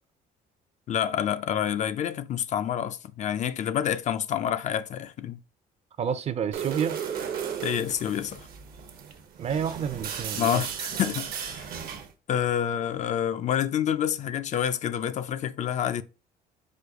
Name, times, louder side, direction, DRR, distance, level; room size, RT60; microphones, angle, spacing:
voice 1, 0.9-5.4 7.6-8.5 10.4-11.6 12.3-16.0, left 9 dB, 45° left, 0.4 m, -28 dB
voice 2, 6.0-7.0 9.4-10.6, right 7 dB, 40° right, 0.5 m, -29 dB
sound 1, 6.5-12.1, right 8 dB, 65° right, 0.8 m, -35 dB
5.0 x 2.2 x 4.7 m
cardioid pair, 110°, 17 cm